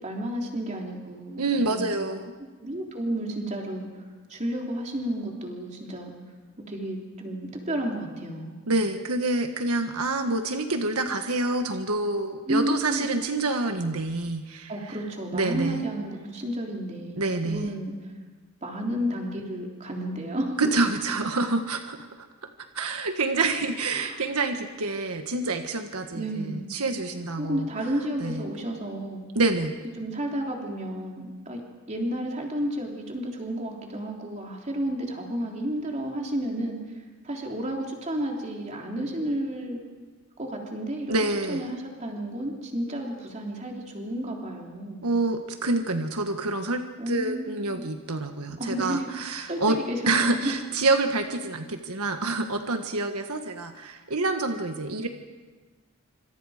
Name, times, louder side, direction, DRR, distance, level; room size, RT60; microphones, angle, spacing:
voice 1, 0.0-1.4 1.7-1.9 2.6-6.1 6.7-8.5 12.5-13.1 14.7-18.1 18.6-20.6 24.0-24.2 26.1-26.6 27.4-29.2 30.0-31.6 31.9-39.8 40.4-41.1 41.5-45.0 47.0-47.8 48.6-49.0 49.5-50.5, right 1 dB, 30° right, 0 dB, 3.5 m, -32 dB
voice 2, 1.4-2.2 8.7-15.0 15.3-15.8 17.2-17.7 20.6-22.3 22.7-27.7 28.2-28.4 29.3-29.8 41.1-41.7 45.0-49.8 50.1-55.1, right 2 dB, 90° right, 6 dB, 1.6 m, -27 dB
26.5 x 26.0 x 5.1 m, 1.3 s
head